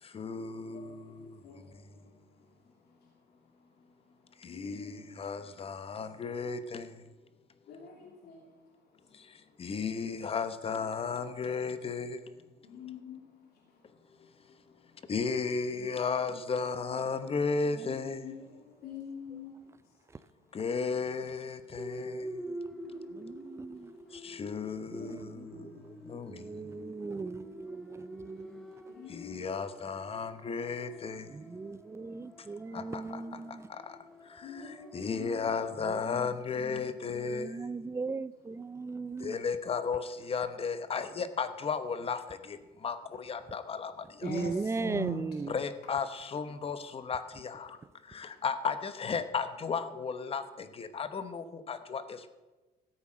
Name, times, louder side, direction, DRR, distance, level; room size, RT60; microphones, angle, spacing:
voice 1, 0.0-1.9 4.4-7.0 9.1-12.4 14.2-14.8 15.1-18.3 20.5-22.4 24.1-26.8 29.1-31.5 32.4-32.5 32.7-33.2 33.5-37.7 39.2-44.4 45.5-52.3, left 5 dB, 35° left, 1.0 m, -35 dB
voice 2, 4.4-5.2 7.7-8.4 12.6-13.5 15.7-15.8 18.2-19.6 22.7-23.5 24.9-25.2 25.7-26.2 28.9-29.5 34.4-35.4 44.2-45.2, left 4 dB, 70° left, 2.7 m, -44 dB
voice 3, 19.3-19.8 22.1-22.6 23.1-24.0 24.9-28.7 31.3-33.7 35.8-36.3 36.6-39.4 44.2-45.5, right 4 dB, 15° right, 0.4 m, -39 dB
sound 1, 21.8-36.0, equal, ahead, 1.0 m, -47 dB
14.0 x 8.3 x 6.3 m
cardioid pair, 110°, 17 cm